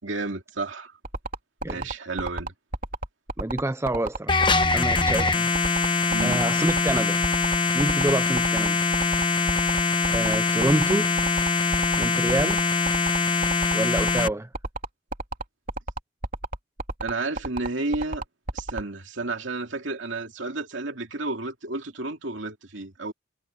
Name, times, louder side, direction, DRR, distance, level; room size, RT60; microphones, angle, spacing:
voice 1, 0.0-0.9 1.7-2.5 6.1-6.4 17.0-18.2 18.5-23.1, right 3 dB, 70° right, 2.7 m, -31 dB
sound 1, 1.0-18.8, right 2 dB, 45° right, 3.0 m, -30 dB
voice 2, 3.4-4.4 4.7-5.5 6.2-7.2 7.7-8.8 10.1-11.1 12.0-12.6 13.7-14.5, right 1 dB, 15° right, 0.6 m, -27 dB
sound 2, 4.3-14.3, left 4 dB, 25° left, 1.2 m, -23 dB
head